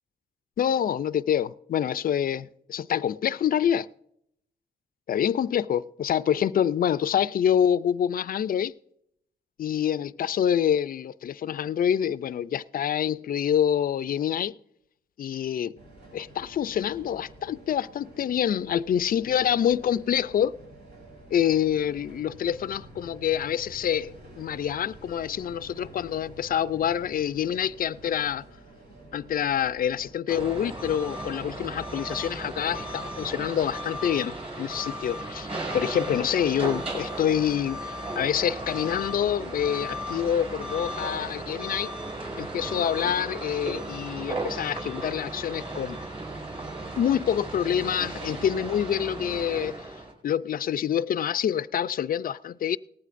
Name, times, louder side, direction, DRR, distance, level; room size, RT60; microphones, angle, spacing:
voice 1, 0.6-3.9 5.1-8.7 9.6-14.5 15.2-15.8 16.1-20.5 21.3-28.4 29.1-41.9 42.4-46.0 47.0-49.8 50.2-52.8, left 9 dB, 55° left, 0.4 m, -26 dB
sound 1, 15.8-30.1, right 1 dB, 90° right, 6.1 m, -49 dB
sound 2, 30.3-50.1, right 1 dB, 35° right, 5.1 m, -35 dB
18.5 x 14.5 x 2.6 m
cardioid pair, 85°, 17 cm